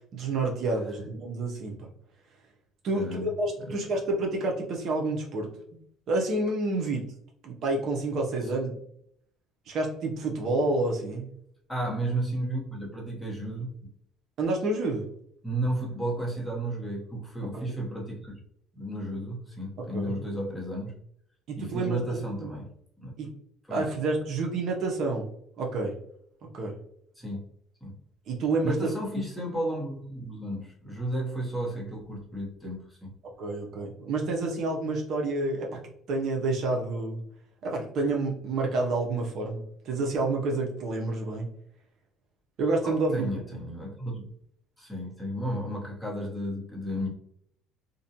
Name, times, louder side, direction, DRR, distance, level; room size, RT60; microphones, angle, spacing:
voice 1, 0.1-1.9 2.8-5.5 6.1-7.1 7.4-8.7 9.7-11.3 14.4-15.1 17.5-17.6 19.9-20.1 21.5-22.5 23.2-23.3 23.7-25.3 25.6-25.9 26.5-26.7 28.3-28.9 33.4-35.8 36.1-37.2 37.6-41.5 42.6-43.3, right 2 dB, 55° right, 0 dB, 0.6 m, -29 dB
voice 2, 2.9-3.3 3.6-3.8 11.7-13.8 15.4-18.3 18.7-20.9 21.6-22.7 23.0-23.1 23.7-23.9 27.2-27.4 27.8-27.9 28.6-33.1 42.8-44.3 44.8-47.1, right 1 dB, ahead, -3 dB, 0.8 m, -33 dB
2.5 x 2.1 x 2.7 m, 0.69 s
cardioid pair, 125°, 0 cm